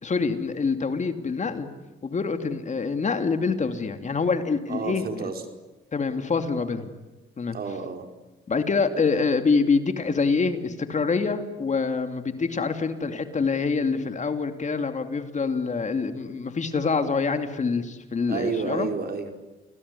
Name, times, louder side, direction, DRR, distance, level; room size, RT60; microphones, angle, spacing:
voice 1, 0.0-1.7 2.0-5.3 5.9-6.9 7.4-7.6 8.5-18.9, left 4 dB, 35° left, 8 dB, 2.8 m, -26 dB
voice 2, 4.7-5.4 7.5-8.1 18.3-19.5, right 5 dB, 50° right, 5 dB, 4.9 m, -30 dB
29.5 x 20.0 x 9.9 m, 1.1 s
cardioid pair, 90°, 20 cm